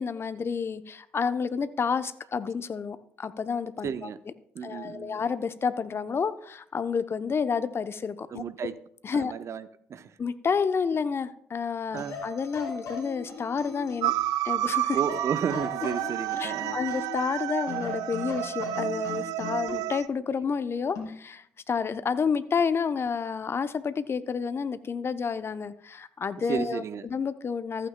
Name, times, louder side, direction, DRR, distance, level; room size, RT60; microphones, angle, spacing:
voice 1, 0.0-4.3 4.6-8.4 9.0-9.3 10.2-14.1 14.4-15.0 16.4-27.9, left 6 dB, 40° left, 13 dB, 0.7 m, -30 dB
voice 2, 3.8-4.2 4.5-5.2 8.3-8.8 9.1-10.1 11.9-12.2 14.9-16.8 26.4-27.1, right 7 dB, 50° right, 14 dB, 0.7 m, -33 dB
sound 1, 12.0-14.2 14.9-17.3 17.7-19.9 20.9-21.2, left 4 dB, 60° left, 2.5 m, -39 dB
sound 2, 14.0-20.1, right 15 dB, 75° right, 0.3 m, -30 dB
14.5 x 8.8 x 2.2 m, 0.65 s
hypercardioid pair, 50°, 6 cm